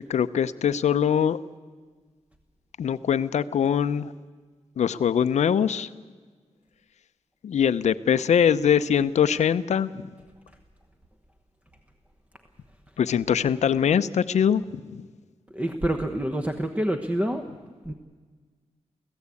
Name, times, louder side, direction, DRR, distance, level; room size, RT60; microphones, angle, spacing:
voice 1, 0.1-1.4 2.8-4.1 4.8-5.9 7.4-10.0 13.0-15.0, left 8 dB, 85° left, 12 dB, 0.7 m, -22 dB
voice 2, 15.5-17.4 17.8-17.9, right 1 dB, 10° right, 6 dB, 1.0 m, -27 dB
24.0 x 16.0 x 8.4 m, 1.5 s
wide cardioid pair, 150°, 11 cm